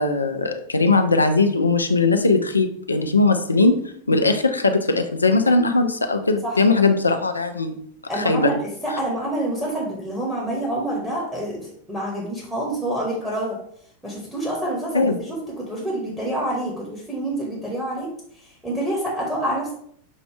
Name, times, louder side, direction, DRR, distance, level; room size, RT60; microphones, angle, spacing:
voice 1, 0.0-3.8 4.1-7.7 8.2-8.5 14.9-15.2, left 3 dB, 80° left, 7 dB, 0.5 m, -19 dB
voice 2, 8.1-8.6 8.8-13.6 14.0-18.1 18.4-19.7, right 1 dB, 5° right, -4 dB, 1.3 m, -27 dB
6.3 x 2.5 x 3.3 m, 0.65 s
figure-of-eight pair, 90°, 0 cm